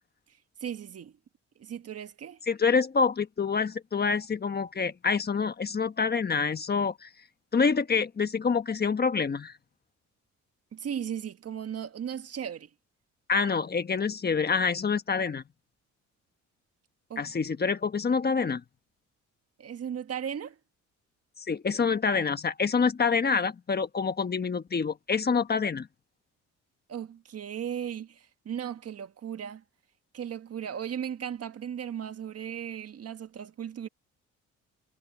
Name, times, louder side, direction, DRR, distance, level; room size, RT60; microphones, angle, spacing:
voice 1, 0.6-1.1 1.6-2.4 10.7-12.7 17.1-17.3 19.6-20.6 26.9-29.6 30.1-33.9, right 8 dB, 55° right, 1.6 m, -36 dB
voice 2, 2.5-7.1 7.5-9.5 13.3-15.4 17.2-18.6 21.4-25.9, left 5 dB, 35° left, 1.3 m, -27 dB
cardioid pair, 90°, 30 cm